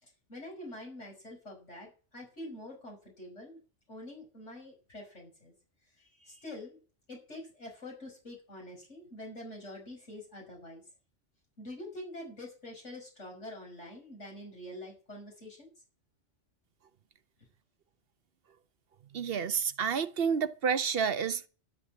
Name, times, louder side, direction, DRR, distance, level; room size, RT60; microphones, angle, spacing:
voice 1, 0.0-3.6 3.9-5.5 6.0-6.8 7.1-10.8 11.6-15.7, left 1 dB, 75° left, 6.3 m, -46 dB
voice 2, 19.1-21.5, right 6 dB, 55° right, 0.9 m, -29 dB
13.5 x 7.4 x 7.5 m
omnidirectional pair, 1.2 m